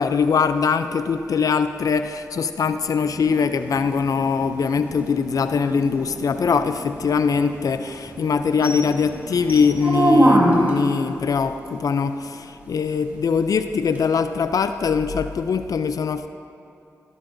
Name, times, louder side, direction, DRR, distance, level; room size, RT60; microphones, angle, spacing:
voice 1, 0.0-16.3, left 5 dB, 70° left, 10 dB, 0.4 m, -22 dB
sound 1, 3.0-10.9 14.0-14.1, right 1 dB, 25° right, 1.7 m, -24 dB
13.0 x 12.0 x 2.6 m, 2.6 s
cardioid pair, 50°, 6 cm